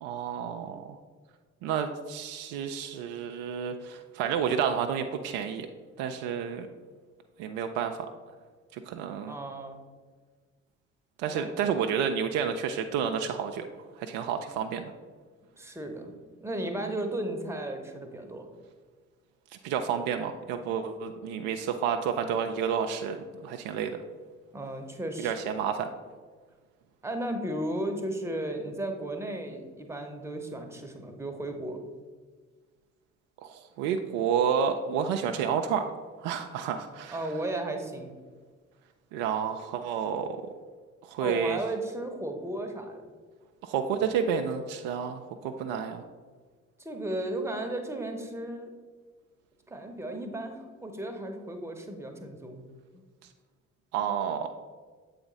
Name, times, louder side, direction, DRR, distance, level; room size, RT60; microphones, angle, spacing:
voice 1, 0.0-1.0 1.6-5.7 6.0-6.7 7.4-8.1 8.7-9.3 11.2-13.6 14.0-14.9 19.6-23.9 25.2-25.9 33.4-35.9 36.2-37.2 39.1-40.4 41.0-41.6 43.6-46.0 53.9-54.5, right 7 dB, 60° right, 6 dB, 0.5 m, -30 dB
voice 2, 9.3-9.8 11.3-11.5 15.6-16.1 16.4-18.5 24.5-25.4 27.0-31.8 37.1-38.2 41.2-43.0 46.8-48.7 49.7-52.6 52.9-53.0, right 1 dB, 5° right, 4 dB, 0.9 m, -35 dB
7.7 x 4.1 x 3.9 m, 1.5 s
figure-of-eight pair, 45°, 39 cm